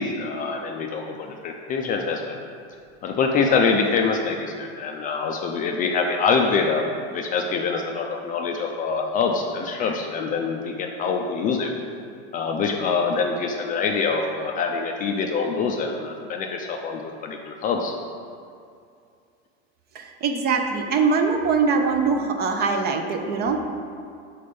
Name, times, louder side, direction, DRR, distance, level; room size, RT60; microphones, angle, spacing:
voice 1, 0.0-2.4 3.0-6.8 7.1-11.7 12.3-17.9, left 5 dB, 25° left, 2 dB, 0.4 m, -25 dB
voice 2, 19.9-23.6, right 5 dB, 30° right, 5 dB, 0.5 m, -22 dB
5.2 x 4.3 x 5.1 m, 2.4 s
supercardioid pair, 125°, 33 cm